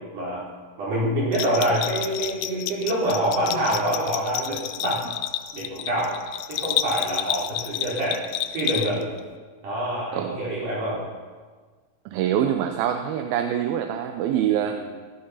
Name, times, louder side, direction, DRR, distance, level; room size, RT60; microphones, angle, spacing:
voice 1, 0.8-5.1 5.5-6.2 6.5-8.2 8.5-9.0 9.6-11.0 14.6-14.8, right 1 dB, 60° right, -6 dB, 5.9 m, -26 dB
Bell, 1.3-9.2, left 12 dB, 90° left, 1.7 m, -30 dB
voice 2, 12.1-14.8, right 10 dB, 85° right, 6 dB, 2.6 m, -25 dB
15.5 x 12.5 x 5.7 m, 1.5 s
omnidirectional pair, 4.2 m